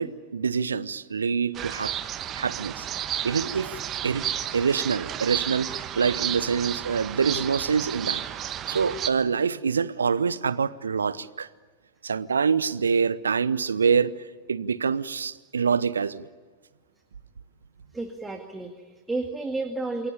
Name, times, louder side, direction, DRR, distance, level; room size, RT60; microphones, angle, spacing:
voice 1, 0.0-1.9 2.3-2.9 3.2-4.2 4.5-8.2 8.7-11.5 12.0-14.2 14.5-16.3, right 6 dB, 70° right, 19 dB, 0.8 m, -25 dB
sound 1, 1.5-9.1, right 10 dB, 30° right, 1.2 m, -32 dB
voice 2, 17.9-20.1, right 2 dB, 10° right, 5 dB, 2.0 m, -32 dB
28.0 x 22.5 x 8.7 m, 1.5 s
figure-of-eight pair, 90°, 0 cm